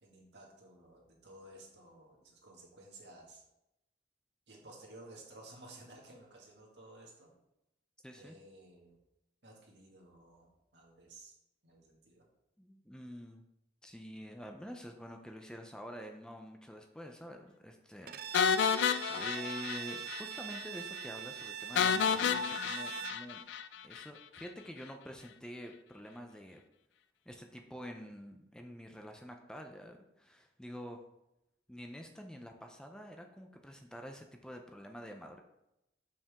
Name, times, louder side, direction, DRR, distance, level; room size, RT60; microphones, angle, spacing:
voice 1, 0.0-3.4 4.5-7.3 8.1-9.0 9.4-11.3 11.6-12.3, right 2 dB, 75° right, -1 dB, 1.9 m, -55 dB
voice 2, 8.0-8.4 12.6-13.4 13.8-23.4 23.8-26.6 27.3-31.0 31.7-35.4, equal, 5° left, 3 dB, 0.5 m, -47 dB
Bowed string instrument, 18.1-23.3, right 10 dB, 55° right, 0.4 m, -43 dB
sound 1, 18.3-20.2 20.5-20.6 21.0-21.1 21.7-24.0, left 7 dB, 85° left, 0.3 m, -31 dB
6.9 x 5.8 x 3.5 m, 0.87 s
head